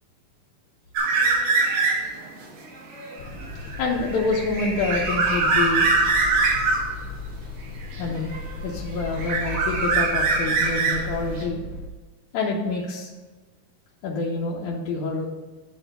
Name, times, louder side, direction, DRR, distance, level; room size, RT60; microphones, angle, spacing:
sound 1, 1.0-2.2 2.7-6.9 7.9-8.7 9.0-11.4, right 3 dB, 65° right, 3.4 m, -23 dB
sound 2, 3.2-11.9, left 3 dB, 90° left, 2.5 m, -36 dB
voice 1, 3.8-5.9 8.0-8.3 8.6-11.6 12.3-13.1 14.0-15.3, left 3 dB, 65° left, -5 dB, 2.1 m, -27 dB
10.5 x 3.5 x 6.7 m, 1.3 s
omnidirectional pair, 4.4 m